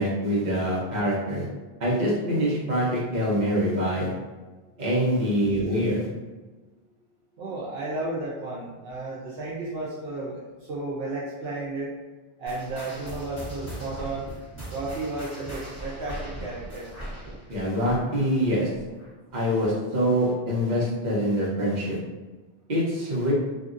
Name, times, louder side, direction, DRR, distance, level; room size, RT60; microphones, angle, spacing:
voice 1, 0.0-1.4 1.8-4.1 4.8-6.1 17.5-18.7 19.3-22.0 22.7-23.3, equal, 45° right, -6 dB, 1.0 m, -25 dB
voice 2, 7.4-10.4 10.7-11.9 12.4-14.2 14.7-16.9, right 2 dB, 75° right, -6 dB, 0.8 m, -33 dB
sound 1, 12.5-19.3 19.6-19.9 20.5-20.6 21.4-21.5, right 1 dB, 15° left, 1.2 m, -39 dB
2.8 x 2.6 x 2.5 m, 1.3 s
omnidirectional pair, 1.1 m